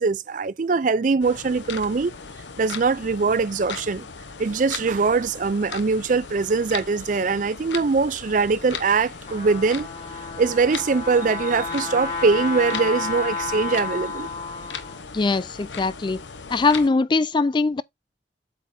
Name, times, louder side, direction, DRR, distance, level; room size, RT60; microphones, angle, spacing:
voice 1, 0.0-2.1 2.6-4.1 4.4-9.9 10.4-14.3, right 4 dB, 45° right, 0.4 m, -22 dB
sound 1, 1.2-16.9, left 5 dB, 90° left, 0.9 m, -38 dB
Trumpet, 9.3-15.0, left 4 dB, 40° left, 3.8 m, -31 dB
voice 2, 15.1-16.2 16.5-17.8, left 3 dB, 25° left, 0.3 m, -21 dB
8.2 x 5.5 x 2.7 m
head